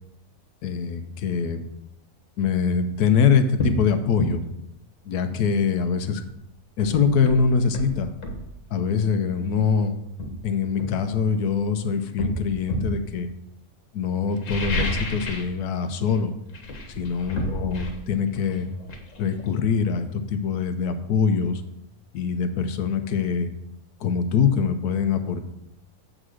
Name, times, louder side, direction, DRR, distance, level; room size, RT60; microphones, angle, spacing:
voice 1, 0.6-1.6 2.4-4.4 5.1-6.2 6.8-8.1 8.7-9.9 10.4-13.3 13.9-16.3 17.0-18.7 19.2-21.6 22.1-23.5 24.0-25.4, left 6 dB, 85° left, 9 dB, 1.2 m, -23 dB
sound 1, 2.9-3.0 3.6-3.8 4.2-4.4 6.3-6.4 6.8-8.5 9.5-9.7 10.2-11.6 12.2-13.0 14.3-15.6 15.8-16.2 16.5-20.1 20.4-20.5, equal, 55° left, 1.5 m, -30 dB
7.6 x 3.8 x 6.3 m, 0.81 s
omnidirectional pair, 1.6 m